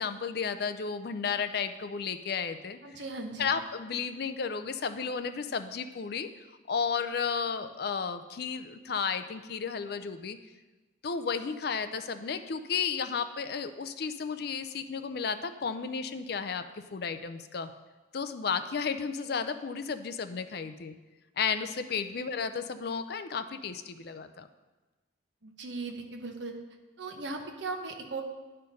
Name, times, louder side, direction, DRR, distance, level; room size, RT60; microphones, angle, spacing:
voice 1, 0.0-2.8 3.4-6.3 6.7-10.4 11.0-16.6 16.9-17.7 18.1-21.0 21.4-24.5, left 6 dB, 50° left, 10 dB, 0.4 m, -33 dB
voice 2, 2.8-3.6 22.2-22.3 25.4-26.5 27.0-28.2, right 3 dB, 65° right, 3 dB, 1.0 m, -38 dB
10.5 x 4.4 x 5.3 m, 1.2 s
head